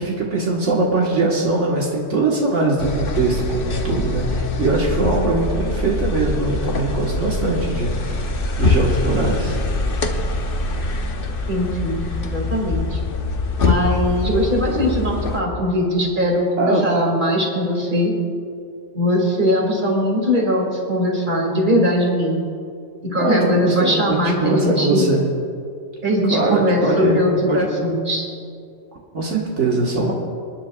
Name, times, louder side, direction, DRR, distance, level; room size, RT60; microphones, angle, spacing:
voice 1, 0.0-8.3 8.6-9.6 16.6-16.9 23.2-25.2 26.3-27.7 29.1-30.1, right 2 dB, 80° right, -3 dB, 1.8 m, -21 dB
sound 1, 2.8-15.4, left 2 dB, 50° left, 1.0 m, -23 dB
voice 2, 11.5-13.0 13.6-18.1 18.9-22.4 23.0-25.1 26.0-28.3, equal, 40° right, -1 dB, 2.4 m, -20 dB
26.5 x 10.5 x 2.4 m, 2.3 s
omnidirectional pair, 1.2 m